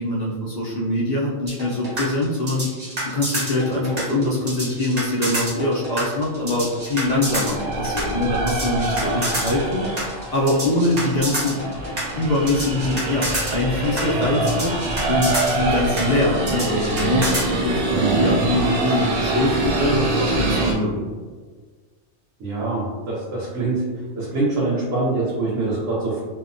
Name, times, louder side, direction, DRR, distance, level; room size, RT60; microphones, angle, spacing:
voice 1, 0.0-2.7 3.0-9.9 10.3-11.6 12.2-14.7 15.1-21.0, left 1 dB, 90° left, -6 dB, 0.3 m, -23 dB
sound 1, 1.5-17.5, right 1 dB, 35° right, 0.9 m, -28 dB
sound 2, 6.7-20.7, right 2 dB, 60° right, 0.5 m, -25 dB
voice 2, 17.9-18.2 22.4-23.8 24.2-26.2, right 3 dB, 90° right, -7 dB, 1.0 m, -24 dB
2.7 x 2.1 x 2.5 m, 1.5 s
omnidirectional pair, 1.3 m